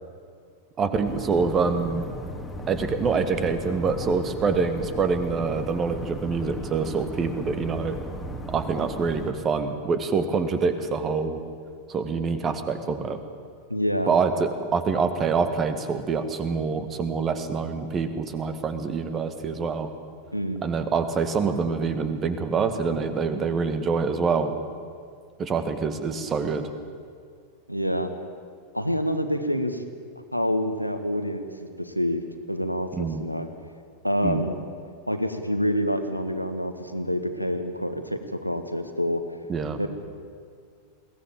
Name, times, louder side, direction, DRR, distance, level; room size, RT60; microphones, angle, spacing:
voice 1, 0.8-2.1 2.7-8.0 8.5-11.4 11.9-13.2 14.1-19.9 20.6-24.5 25.4-26.7 32.9-33.2 34.2-34.5 39.5-39.8, right 5 dB, 25° right, 9 dB, 1.9 m, -26 dB
sound 1, 1.0-9.3, equal, 5° left, 2.4 m, -36 dB
voice 2, 13.7-14.1 20.3-20.6 27.7-28.1 28.7-29.8 30.3-33.5 34.0-34.5 35.1-39.2 39.8-39.9, equal, 90° left, 7 dB, 1.6 m, -27 dB
22.0 x 17.0 x 8.8 m, 2.2 s
figure-of-eight pair, 90°, 0 cm